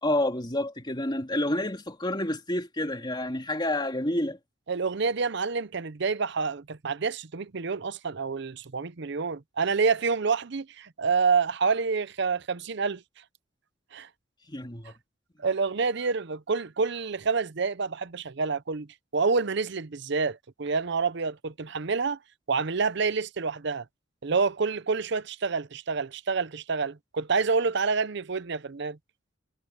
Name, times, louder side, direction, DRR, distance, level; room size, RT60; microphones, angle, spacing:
voice 1, 0.0-4.4 14.5-14.9 15.4-15.5, left 1 dB, 25° left, 3.1 m, -29 dB
voice 2, 4.7-13.0 13.9-14.1 14.8-14.9 15.4-22.2 22.5-23.8 24.2-29.0, right 4 dB, 65° right, 0.7 m, -28 dB
head